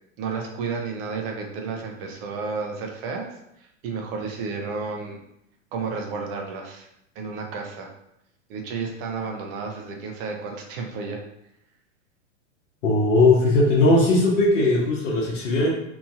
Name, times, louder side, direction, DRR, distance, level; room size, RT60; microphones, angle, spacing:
voice 1, 0.2-3.3 3.6-5.2 5.7-6.9 7.1-7.9 8.5-11.2, right 4 dB, 45° right, 2 dB, 0.7 m, -32 dB
voice 2, 12.8-15.7, left 2 dB, 70° left, -4 dB, 0.9 m, -18 dB
2.9 x 2.6 x 2.4 m, 0.80 s
hypercardioid pair, 115°, 38 cm